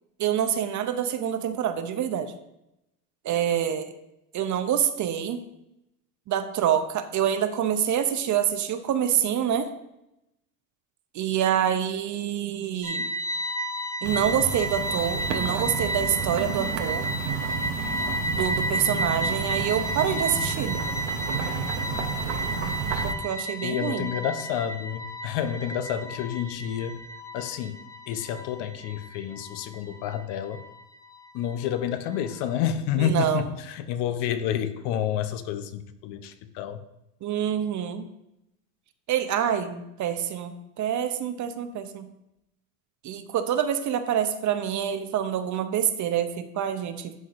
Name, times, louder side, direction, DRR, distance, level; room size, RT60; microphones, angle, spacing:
voice 1, 0.2-2.3 3.2-3.9 4.3-5.4 6.3-9.7 11.1-13.1 14.0-17.1 18.3-20.8 23.0-24.1 33.0-33.5 37.2-38.1 39.1-42.1 43.0-47.1, right 9 dB, 40° right, 9 dB, 0.7 m, -26 dB
sound 1, 12.8-32.7, right 1 dB, 10° left, 0.3 m, -33 dB
sound 2, 14.0-23.1, right 6 dB, 75° right, 0.9 m, -31 dB
voice 2, 23.6-27.0 27.3-27.8 28.1-30.6 31.3-36.8, left 9 dB, 65° left, 10 dB, 0.7 m, -29 dB
11.0 x 3.9 x 2.5 m, 0.87 s
hypercardioid pair, 85°, 46 cm